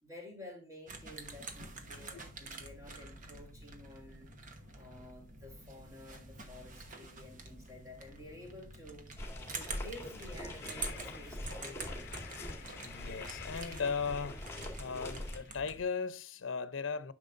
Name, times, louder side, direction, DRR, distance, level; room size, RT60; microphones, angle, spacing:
voice 1, 0.0-4.3 4.7-9.1 9.5-12.1, left 1 dB, 15° right, 3.3 m, -51 dB
sound 1, 0.9-15.8, right 3 dB, 40° right, 1.1 m, -48 dB
sound 2, 9.2-15.4, left 1 dB, 15° left, 1.9 m, -43 dB
Train, 10.6-15.6, left 8 dB, 55° left, 0.7 m, -52 dB
voice 2, 12.8-14.5 14.8-17.1, left 5 dB, 90° left, 0.7 m, -37 dB
10.0 x 6.2 x 2.6 m
head